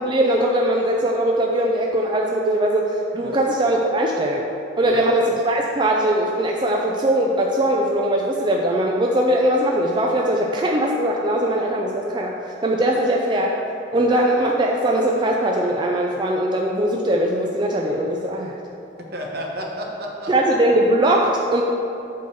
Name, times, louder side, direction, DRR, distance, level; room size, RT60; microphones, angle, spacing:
voice 1, 0.0-4.5 4.8-12.3 12.6-13.5 13.9-18.5 20.3-21.6, right 1 dB, 25° right, -1 dB, 0.4 m, -20 dB
voice 2, 19.0-20.5, equal, 60° right, -1 dB, 1.2 m, -32 dB
8.4 x 3.8 x 6.6 m, 2.7 s
head